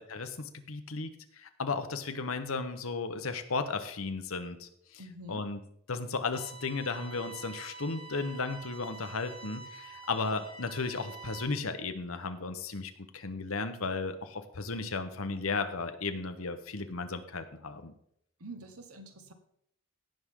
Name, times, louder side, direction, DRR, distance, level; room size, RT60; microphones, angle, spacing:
voice 1, 0.0-5.0 5.3-5.6 5.9-17.9, left 4 dB, 65° left, 8 dB, 1.0 m, -35 dB
voice 2, 5.0-5.4 18.4-19.3, right 1 dB, 75° right, 7 dB, 1.3 m, -46 dB
sound 1, 6.3-11.4, right 4 dB, 25° left, 1.6 m, -47 dB
17.0 x 6.3 x 3.7 m, 0.72 s
head